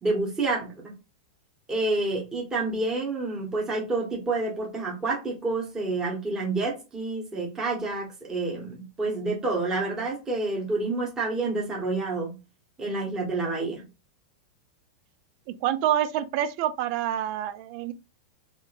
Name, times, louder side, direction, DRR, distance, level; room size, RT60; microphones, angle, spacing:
voice 1, 0.0-0.9 1.7-12.3 12.8-13.8, right 3 dB, 20° right, 1.6 m, -28 dB
voice 2, 15.6-17.9, right 11 dB, 55° right, 0.5 m, -27 dB
3.6 x 2.8 x 2.6 m
hypercardioid pair, 105°, 3 cm